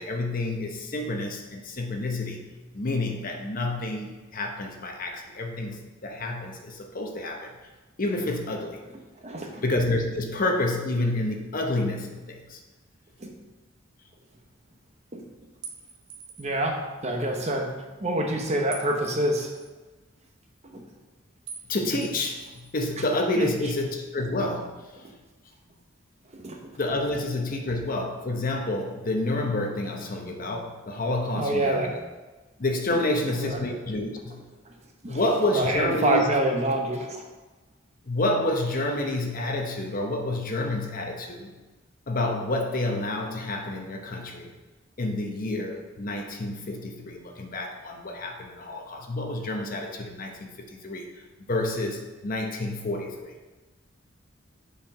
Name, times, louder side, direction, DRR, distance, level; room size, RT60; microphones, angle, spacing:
voice 1, 0.0-2.5 2.7-4.1 4.3-7.5 8.0-8.8 9.6-12.6 21.7-24.8 26.8-31.9 32.6-34.4 35.1-36.3 38.1-41.5 42.1-44.5 45.0-51.1 51.5-53.3, left 2 dB, 45° left, 3 dB, 0.8 m, -29 dB
voice 2, 9.2-9.6 13.2-13.3 15.1-15.2 16.4-17.7 18.0-19.5 20.7-20.8 23.3-23.7 26.3-26.6 31.3-31.9 33.4-33.6 35.0-35.2 35.5-37.2, right 1 dB, 35° right, 2 dB, 0.9 m, -26 dB
sound 1, 15.6-16.6 18.7-19.7 21.5-21.7 22.0-23.0, right 5 dB, 65° right, 0.9 m, -43 dB
6.8 x 4.4 x 4.9 m, 1.2 s
head